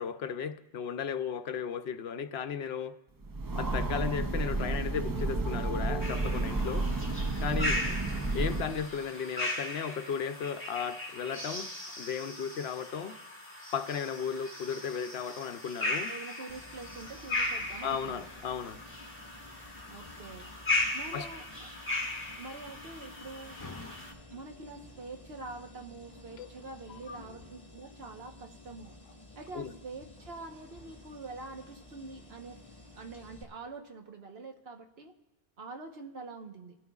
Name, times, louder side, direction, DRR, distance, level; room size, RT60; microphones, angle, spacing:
voice 1, 0.0-3.0 3.5-6.9 7.4-7.8 8.3-11.7 12.0-13.1 13.7-16.1 17.8-18.8 21.1-21.3 26.4-26.5 26.9-27.2 29.5-29.7, left 7 dB, 70° left, 9 dB, 0.9 m, -35 dB
Train, 3.2-9.0, right 2 dB, 35° right, 0.3 m, -31 dB
sound 1, 6.0-24.1, left 2 dB, 10° left, 1.4 m, -37 dB
voice 2, 7.5-8.0 16.1-18.2 19.9-20.5 20.9-21.7 22.4-23.6 24.3-28.9 29.4-32.6 33.0-35.1 35.6-36.8, right 3 dB, 70° right, 3 dB, 1.3 m, -45 dB
sound 2, 16.5-33.4, left 2 dB, 30° left, 1.6 m, -52 dB
26.0 x 13.0 x 2.4 m, 0.96 s
omnidirectional pair, 1.1 m